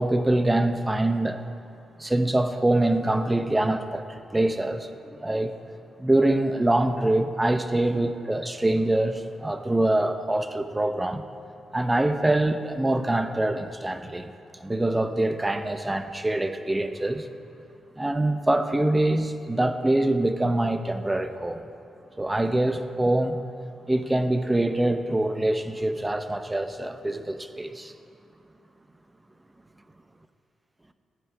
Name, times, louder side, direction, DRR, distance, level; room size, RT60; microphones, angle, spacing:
voice 1, 0.0-1.4 2.0-5.5 6.0-11.2 11.7-14.3 14.6-17.3 18.0-21.6 22.2-23.4 23.9-27.9, right 1 dB, 15° right, 9 dB, 0.7 m, -24 dB
14.5 x 9.4 x 5.0 m, 2.5 s
cardioid pair, 95°, 0 cm